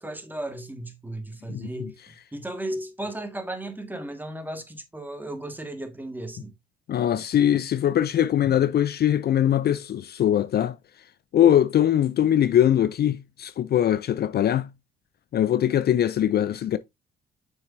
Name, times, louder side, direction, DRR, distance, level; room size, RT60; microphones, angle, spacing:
voice 1, 0.0-2.0 2.3-6.5, right 1 dB, 10° right, 1.8 m, -35 dB
voice 2, 6.9-10.8 11.3-14.7 15.3-16.8, left 10 dB, 55° left, 0.5 m, -21 dB
7.3 x 6.3 x 2.7 m
cardioid pair, 90°, 20 cm